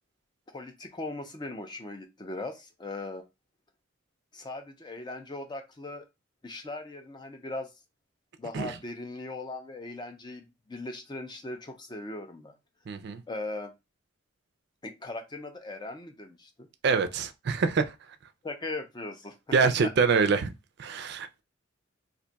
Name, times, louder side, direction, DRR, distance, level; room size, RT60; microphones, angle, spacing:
voice 1, 0.5-3.2 4.3-6.1 6.4-7.7 8.4-12.5 13.3-13.7 14.8-16.7 18.4-19.4 19.6-19.7, left 2 dB, 20° left, 0.4 m, -39 dB
voice 2, 12.9-13.2 16.8-17.9 19.5-20.5 20.8-21.4, right 5 dB, 55° right, 0.4 m, -25 dB
2.5 x 2.2 x 3.9 m
head